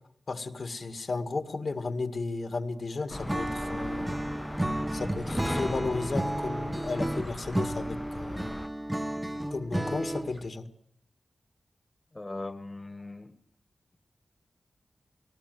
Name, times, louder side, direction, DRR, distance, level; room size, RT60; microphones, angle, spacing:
voice 1, 0.3-4.1 4.9-8.5 9.5-10.7, left 3 dB, 60° left, 9 dB, 2.0 m, -34 dB
sound 1, 3.1-8.7, left 1 dB, 10° left, 0.8 m, -38 dB
Acoustic guitar / Strum, 3.3-10.5, right 1 dB, 15° right, 1.1 m, -32 dB
voice 2, 12.1-13.3, left 2 dB, 30° left, 10 dB, 1.5 m, -39 dB
19.5 x 18.5 x 9.5 m, 0.66 s
wide cardioid pair, 65°, 0 cm